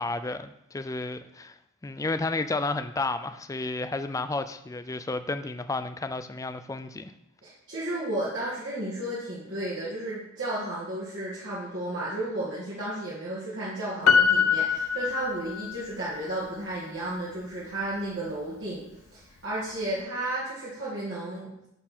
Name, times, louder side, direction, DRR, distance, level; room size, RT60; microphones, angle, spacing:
voice 1, 0.0-1.6 1.8-7.1, left 3 dB, 15° left, 10 dB, 0.3 m, -32 dB
voice 2, 7.4-18.9 19.1-21.5, right 1 dB, 55° right, -8 dB, 2.0 m, -33 dB
Piano, 14.1-15.8 16.2-16.3, left 6 dB, 75° left, 0.6 m, -23 dB
11.0 x 4.4 x 4.3 m, 0.83 s
head